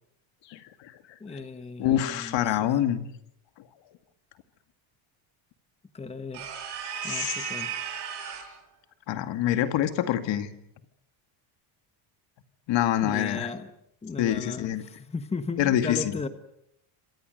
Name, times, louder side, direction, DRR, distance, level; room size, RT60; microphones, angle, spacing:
voice 1, 1.2-2.7 5.9-6.5 7.0-7.8 13.0-13.7 14.0-16.3, left 4 dB, 10° left, 10 dB, 1.3 m, -36 dB
voice 2, 1.8-3.1 7.0-7.5 9.1-10.5 12.7-13.5 14.2-14.8 15.6-16.0, left 11 dB, 60° left, 9 dB, 2.3 m, -25 dB
sound 1, 6.3-8.6, right 8 dB, 55° right, 6.2 m, -35 dB
28.0 x 26.5 x 6.6 m, 0.75 s
cardioid pair, 145°, 50 cm